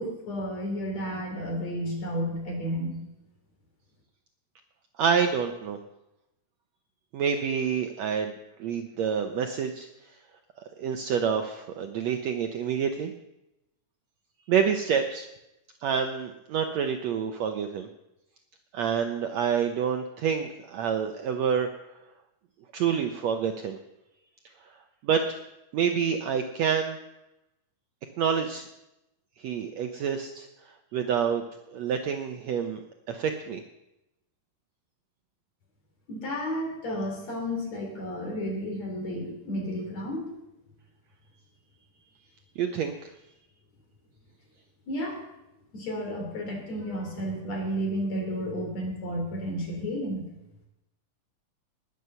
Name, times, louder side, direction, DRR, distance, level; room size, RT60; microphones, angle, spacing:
voice 1, 0.0-3.0 36.1-40.3 44.9-45.2 45.7-50.3, equal, 50° left, 1 dB, 4.6 m, -32 dB
voice 2, 5.0-5.8 7.1-9.9 10.8-13.1 14.5-15.3 15.8-17.9 18.7-21.7 22.7-23.8 25.0-25.2 25.7-27.0 28.2-28.7 29.4-30.5 30.9-31.4 31.7-32.8 33.1-33.6 42.6-43.1, right 7 dB, 70° right, 6 dB, 1.7 m, -27 dB
19.5 x 7.8 x 6.8 m, 0.90 s
omnidirectional pair, 3.9 m